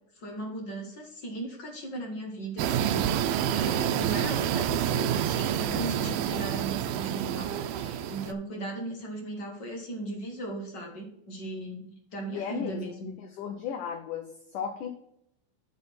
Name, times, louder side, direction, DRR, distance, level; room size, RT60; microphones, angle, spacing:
voice 1, 0.1-13.1, right 2 dB, 50° left, 1 dB, 1.4 m, -37 dB
sound 1, 2.6-8.3, right 10 dB, 85° right, 2.4 m, -28 dB
voice 2, 12.3-14.9, left 7 dB, 70° left, 3 dB, 2.2 m, -35 dB
9.8 x 4.1 x 5.4 m, 0.73 s
omnidirectional pair, 4.2 m